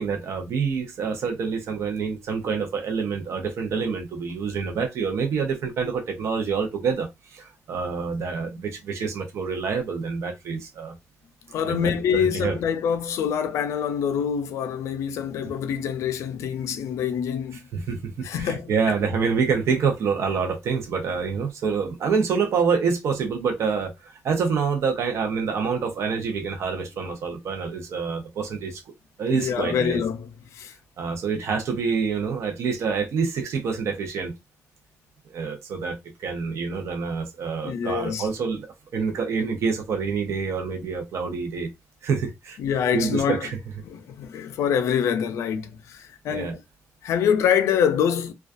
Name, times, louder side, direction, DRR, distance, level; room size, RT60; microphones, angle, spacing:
voice 1, 0.0-10.9 11.6-12.6 17.7-28.8 29.2-30.0 31.0-34.3 35.2-38.7 38.9-41.7 42.0-42.6 42.9-43.6 46.3-46.6, right 5 dB, 75° right, 0.6 m, -27 dB
voice 2, 11.5-17.7 18.2-18.7 29.3-30.7 37.6-38.3 42.6-43.5 43.8-46.6 47.0-48.3, left 8 dB, 90° left, 0.4 m, -25 dB
2.3 x 2.2 x 2.5 m
cardioid pair, 90°, 5 cm